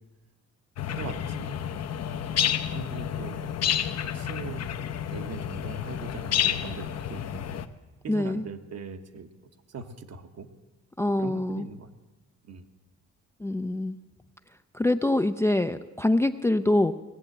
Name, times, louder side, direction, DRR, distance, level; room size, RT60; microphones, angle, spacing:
sound 1, 0.8-7.7, left 9 dB, 60° left, 0.8 m, -30 dB
voice 1, 0.9-1.6 2.1-3.4 4.0-4.6 5.1-7.4 8.0-9.3 9.7-10.5 11.2-11.9 12.5-12.7, right 5 dB, 55° right, 7 dB, 1.1 m, -40 dB
voice 2, 8.1-8.5 11.0-11.7 13.4-14.0 14.7-16.9, left 1 dB, 10° left, 9 dB, 0.4 m, -25 dB
18.0 x 7.3 x 7.8 m, 1.1 s
cardioid pair, 90°, 30 cm